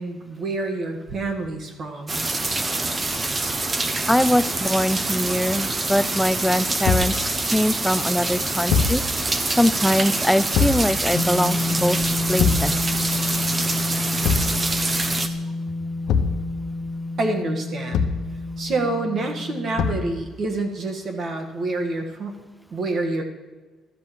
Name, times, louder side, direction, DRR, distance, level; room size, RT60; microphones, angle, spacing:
voice 1, 0.0-2.2 17.2-18.0 18.6-22.4 22.7-23.2, right 2 dB, 50° right, 4 dB, 1.6 m, -27 dB
sound 1, 2.1-15.3, right 2 dB, 25° right, 0.8 m, -25 dB
voice 2, 4.1-9.0 9.6-12.0 12.3-12.7, equal, ahead, 13 dB, 0.4 m, -22 dB
Thump thud, 6.8-7.2 8.7-9.0 10.5-10.9 12.4-12.7 14.2-14.6 16.1-16.4 17.9-18.3 19.8-20.1, left 6 dB, 80° left, 0.8 m, -21 dB
sound 2, 11.1-20.2, left 2 dB, 40° left, 1.0 m, -29 dB
13.0 x 5.3 x 7.5 m, 1.3 s
cardioid pair, 125°, 0 cm